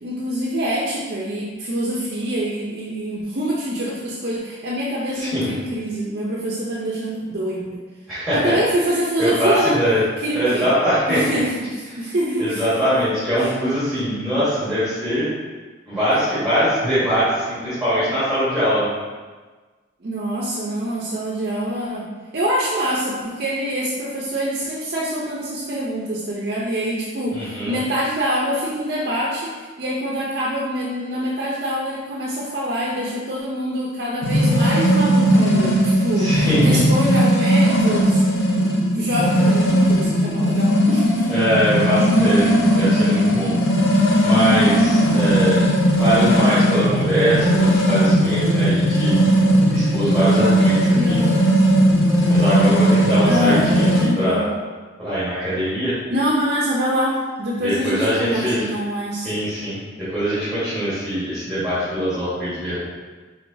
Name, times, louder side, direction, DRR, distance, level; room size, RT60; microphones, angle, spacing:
voice 1, 0.0-7.8 8.3-9.8 10.2-10.7 11.1-13.0 13.4-13.5 20.0-41.3 41.9-42.1 50.9-51.5 53.2-54.5 56.1-59.3, equal, 50° right, -5 dB, 0.5 m, -25 dB
voice 2, 5.1-5.5 8.1-8.5 9.2-10.0 10.3-11.2 12.4-15.3 15.9-18.9 27.3-27.7 36.2-36.8 41.3-43.5 44.2-45.6 46.0-49.1 49.7-51.2 52.3-53.9 54.2-54.4 55.0-55.9 57.6-58.6 59.2-62.8, equal, ahead, -14 dB, 1.3 m, -22 dB
sound 1, 34.2-54.1, equal, 85° left, 0.8 m, -17 dB
4.5 x 3.6 x 2.7 m, 1.4 s
head